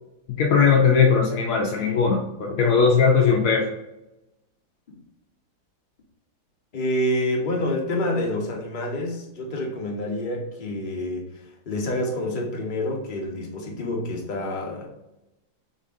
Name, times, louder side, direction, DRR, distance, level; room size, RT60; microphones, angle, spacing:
voice 1, 0.3-3.7, left 6 dB, 85° left, 1 dB, 0.7 m, -19 dB
voice 2, 6.7-14.9, left 1 dB, 40° left, 0 dB, 0.7 m, -28 dB
6.4 x 3.2 x 2.5 m, 0.93 s
omnidirectional pair, 2.1 m